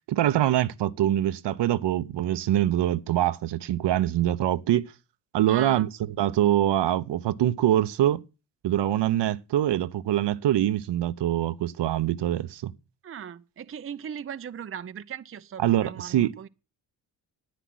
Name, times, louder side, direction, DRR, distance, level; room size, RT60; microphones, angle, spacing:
voice 1, 0.1-4.9 5.3-8.2 8.6-12.7 15.6-16.3, right 12 dB, 55° right, 0.9 m, -24 dB
voice 2, 5.5-5.9 13.0-16.5, right 8 dB, 25° right, 0.7 m, -38 dB
10.5 x 9.1 x 6.3 m
hypercardioid pair, 50°, 49 cm